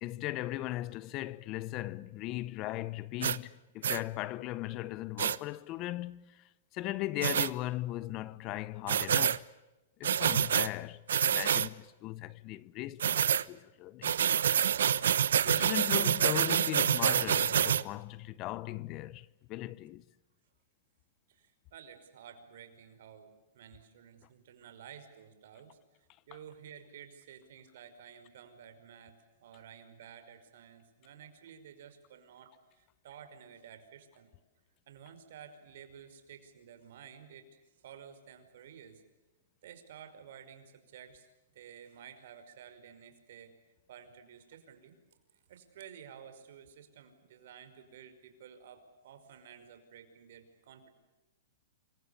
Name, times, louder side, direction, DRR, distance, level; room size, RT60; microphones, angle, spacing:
voice 1, 0.0-9.4 10.0-14.2 15.1-20.0, left 16 dB, 35° left, 0.8 m, -38 dB
sound 1, 3.2-3.4 3.8-4.0 5.2-5.4 7.2-7.5 8.9-9.4 10.0-10.7 11.1-11.7 13.0-13.4 14.0-17.8, right 9 dB, 80° right, 1.0 m, -27 dB
voice 2, 21.3-25.8 26.3-34.3 34.9-39.0 39.6-41.3 41.6-43.5 43.9-45.0 45.5-50.9, right 8 dB, 65° right, 5.3 m, -53 dB
27.5 x 24.5 x 7.0 m
hypercardioid pair, 145°, 0 cm